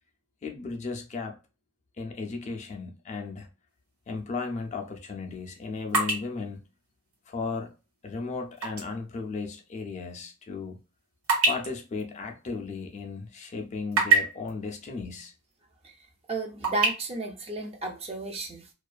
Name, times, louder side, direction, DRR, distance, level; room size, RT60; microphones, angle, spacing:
voice 1, 0.4-1.4 2.0-3.5 4.1-6.6 7.3-7.7 8.0-10.8 11.4-15.3, left 4 dB, 35° left, 0.4 m, -35 dB
sound 1, 3.8-4.0 4.5-8.9 9.3-9.4 10.0-13.1 13.5-14.5 15.5-15.6 16.0-16.9, right 3 dB, 85° right, 1.2 m, -28 dB
voice 2, 15.8-18.7, right 3 dB, 30° right, 0.4 m, -33 dB
2.4 x 2.3 x 2.3 m
head